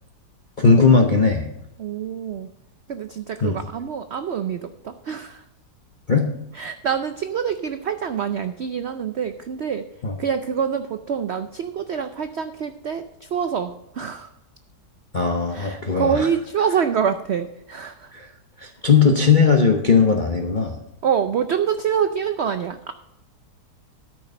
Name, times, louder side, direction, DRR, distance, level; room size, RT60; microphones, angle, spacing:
voice 1, 0.6-1.5 3.4-3.6 6.1-6.3 10.0-10.2 15.1-16.3 18.1-18.3 18.6-20.8, left 5 dB, 40° left, 3 dB, 0.8 m, -18 dB
voice 2, 1.8-2.5 2.9-5.4 6.5-9.8 10.2-14.3 15.5-18.1 21.0-22.9, right 7 dB, 90° right, 9 dB, 0.5 m, -26 dB
13.5 x 6.1 x 5.3 m, 0.89 s
omnidirectional pair, 1.9 m